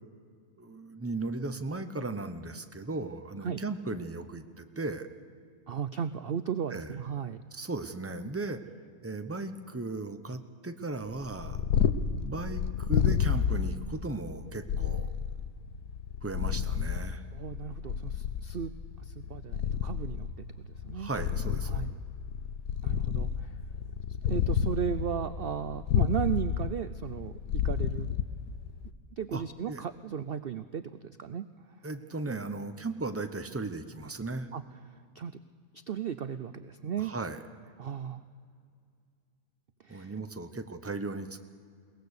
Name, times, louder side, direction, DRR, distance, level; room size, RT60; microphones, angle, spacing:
voice 1, 0.6-5.1 6.7-7.0 7.5-8.6 9.0-11.6 12.2-15.1 16.2-17.2 20.9-21.8 29.3-29.8 31.8-34.5 37.0-37.4 39.9-41.4, right 2 dB, 15° right, 8 dB, 0.6 m, -36 dB
voice 2, 5.7-7.4 17.3-18.7 19.0-21.1 21.7-21.9 22.8-23.3 24.2-27.4 27.6-28.2 29.2-31.4 34.5-34.6 35.2-35.3 35.9-37.1 37.8-38.2 39.8-40.1, right 8 dB, 65° right, 11 dB, 0.5 m, -35 dB
Purr, 11.2-28.9, left 8 dB, 85° left, 1.4 m, -31 dB
22.0 x 19.0 x 6.6 m, 2.3 s
omnidirectional pair, 1.6 m